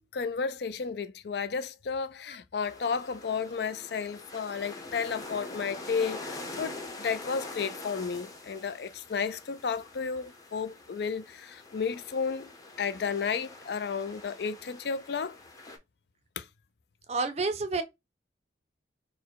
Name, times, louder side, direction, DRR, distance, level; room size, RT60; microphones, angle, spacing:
voice 1, 0.0-12.5 12.8-15.4 16.4-16.5, left 5 dB, 60° left, 0.4 m, -33 dB
sound 1, 2.6-15.8, left 2 dB, 20° left, 0.7 m, -44 dB
voice 2, 17.1-17.8, right 3 dB, 35° right, 0.6 m, -29 dB
4.1 x 2.1 x 4.6 m
head